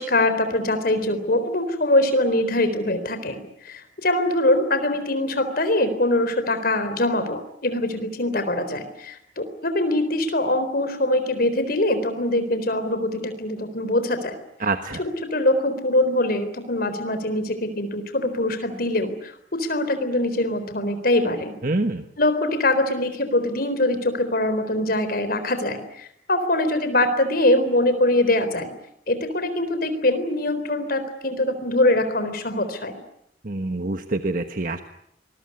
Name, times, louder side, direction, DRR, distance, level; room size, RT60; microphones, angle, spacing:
voice 1, 0.0-14.4 15.0-21.5 22.2-28.7 29.1-33.0, left 1 dB, 55° left, 10 dB, 3.9 m, -23 dB
voice 2, 14.6-15.0 21.6-22.0 33.4-34.8, right 2 dB, 50° right, 7 dB, 1.3 m, -26 dB
25.5 x 21.5 x 9.7 m, 0.75 s
head